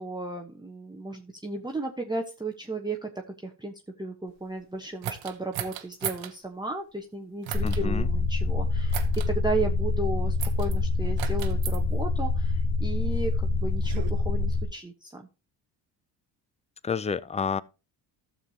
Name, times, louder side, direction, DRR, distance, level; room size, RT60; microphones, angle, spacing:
voice 1, 0.0-15.3, right 2 dB, 10° right, 1.1 m, -34 dB
sound 1, 5.0-6.3 7.4-7.8 8.9-9.3 10.4-10.7 11.2-11.8 12.7-14.1, right 11 dB, 70° right, 1.2 m, -36 dB
sound 2, 7.5-14.7, left 3 dB, 70° left, 3.3 m, -26 dB
voice 2, 7.6-8.1 16.8-17.6, left 6 dB, 15° left, 0.4 m, -29 dB
13.0 x 6.9 x 2.9 m
supercardioid pair, 75°, 48 cm